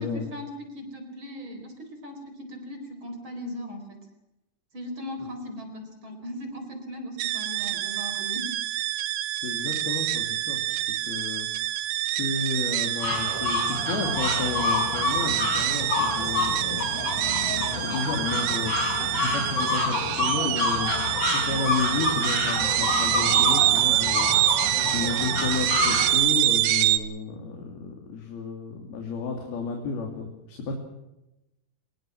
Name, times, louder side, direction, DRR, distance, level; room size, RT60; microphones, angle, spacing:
voice 1, 0.0-4.0 4.7-8.5, left 1 dB, 30° right, 6 dB, 4.8 m, -38 dB
sound 1, 7.2-27.0, right 14 dB, 80° right, 2.9 m, -26 dB
voice 2, 9.3-10.8 11.1-17.3 17.7-20.9 21.3-30.7, left 4 dB, 75° left, 2 dB, 4.7 m, -32 dB
sound 2, 13.0-26.1, left 3 dB, 40° left, 7.0 m, -28 dB
23.5 x 22.5 x 6.1 m, 0.92 s
omnidirectional pair, 4.4 m